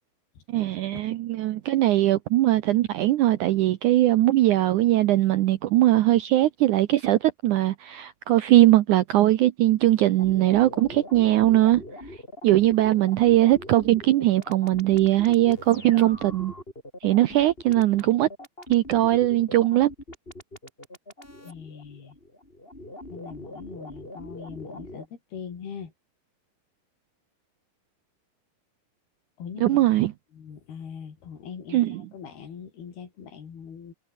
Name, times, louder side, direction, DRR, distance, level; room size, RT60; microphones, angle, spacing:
voice 1, 0.5-11.8 12.4-16.5 17.0-18.3 18.7-19.9 29.6-30.1 31.7-32.1, right 15 dB, 80° right, 1.8 m, -20 dB
sound 1, 10.2-25.1, left 1 dB, 15° left, 8.0 m, -42 dB
voice 2, 21.4-22.2 23.1-25.1 25.3-25.9 29.4-29.8 30.4-31.8 32.1-33.9, left 7 dB, 75° left, 5.7 m, -41 dB
omnidirectional pair, 4.5 m